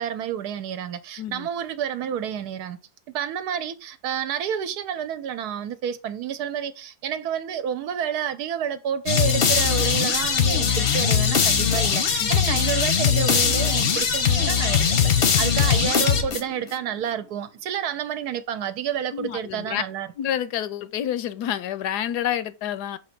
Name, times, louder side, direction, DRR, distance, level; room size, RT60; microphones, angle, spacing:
voice 1, 0.0-2.8 3.1-20.1, right 9 dB, 70° right, 1.2 m, -29 dB
voice 2, 1.2-1.5 12.2-12.5 19.1-19.8 20.2-23.0, left 10 dB, 75° left, 1.2 m, -28 dB
sound 1, 9.1-16.7, left 7 dB, 45° left, 0.8 m, -21 dB
6.6 x 3.0 x 5.8 m
omnidirectional pair, 1.8 m